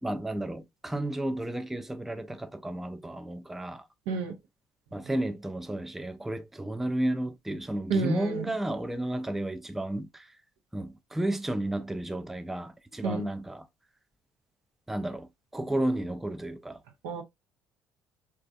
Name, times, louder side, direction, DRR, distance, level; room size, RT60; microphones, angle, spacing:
voice 1, 0.0-3.9 4.9-10.4 10.7-13.7 14.9-16.8, right 1 dB, 5° right, 0.3 m, -32 dB
voice 2, 4.1-4.4 7.9-8.5 13.0-13.2 17.0-17.2, right 5 dB, 70° right, 0.6 m, -30 dB
3.2 x 2.3 x 2.4 m
hypercardioid pair, 55°, 9 cm